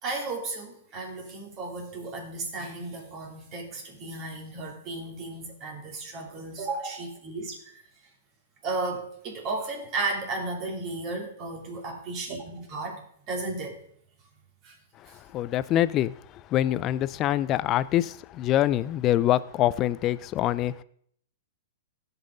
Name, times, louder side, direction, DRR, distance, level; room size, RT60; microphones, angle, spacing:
voice 1, 0.0-7.8 8.6-13.8 14.6-14.8 15.1-15.2, right 3 dB, 40° right, 3.2 m, -34 dB
voice 2, 15.3-16.1 16.5-20.8, left 13 dB, 35° left, 0.4 m, -25 dB
16.0 x 5.6 x 3.9 m
hypercardioid pair, 120°, 0 cm